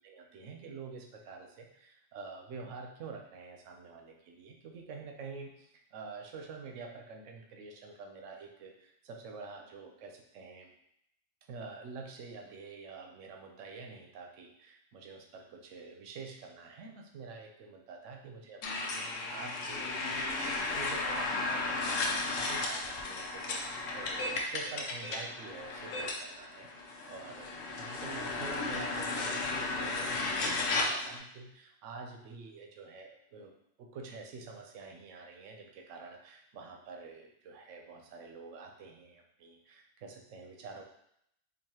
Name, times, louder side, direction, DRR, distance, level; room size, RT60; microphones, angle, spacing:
voice 1, 0.0-10.7 11.5-33.5 33.8-40.8, right 4 dB, 75° right, 3 dB, 1.0 m, -47 dB
sound 1, 18.6-31.2, left 3 dB, 75° left, 1.0 m, -34 dB
4.6 x 2.8 x 2.8 m, 0.74 s
omnidirectional pair, 1.3 m